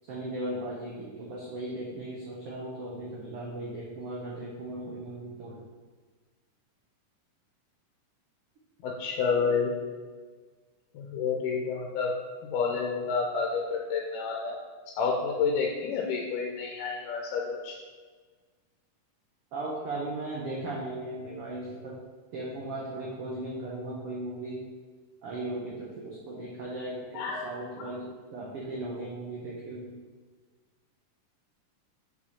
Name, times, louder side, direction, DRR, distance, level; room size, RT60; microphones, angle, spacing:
voice 1, 0.0-5.6 19.5-21.9 22.3-24.6 25.2-29.9, right 1 dB, 80° right, -4 dB, 1.3 m, -37 dB
voice 2, 8.8-9.7 10.9-12.1 12.4-14.6 15.0-17.8 27.1-27.4, left 5 dB, 85° left, 0 dB, 2.2 m, -29 dB
5.4 x 4.9 x 4.2 m, 1.4 s
omnidirectional pair, 3.7 m